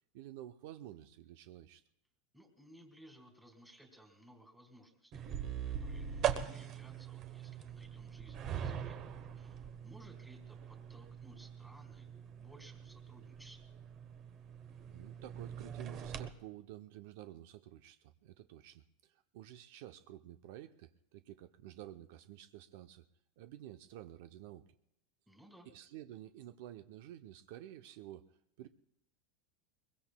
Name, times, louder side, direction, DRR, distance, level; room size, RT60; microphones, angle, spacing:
voice 1, 0.1-1.8 14.9-23.1 23.4-24.7 25.7-28.3 28.6-28.7, right 13 dB, 65° right, 9 dB, 0.5 m, -51 dB
voice 2, 2.3-5.3 5.7-9.0 9.3-13.6 25.3-25.7, right 1 dB, ahead, 3 dB, 1.8 m, -60 dB
sound 1, 5.1-16.3, right 9 dB, 35° right, 0.8 m, -42 dB
22.0 x 22.0 x 2.2 m, 0.78 s
supercardioid pair, 155°, 0 cm